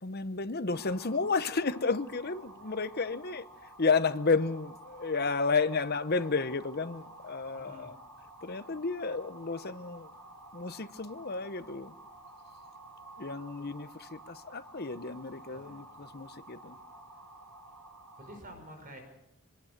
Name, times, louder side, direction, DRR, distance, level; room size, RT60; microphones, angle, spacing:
voice 1, 0.0-3.4 3.8-8.0 8.4-10.1 10.5-11.9 13.2-16.8, left 4 dB, 45° left, 0.9 m, -32 dB
sound 1, 0.7-18.4, right 2 dB, 85° right, 7.3 m, -51 dB
voice 2, 7.5-8.0 15.3-15.9 18.2-19.0, equal, 40° right, 5.2 m, -49 dB
24.5 x 19.5 x 6.6 m
head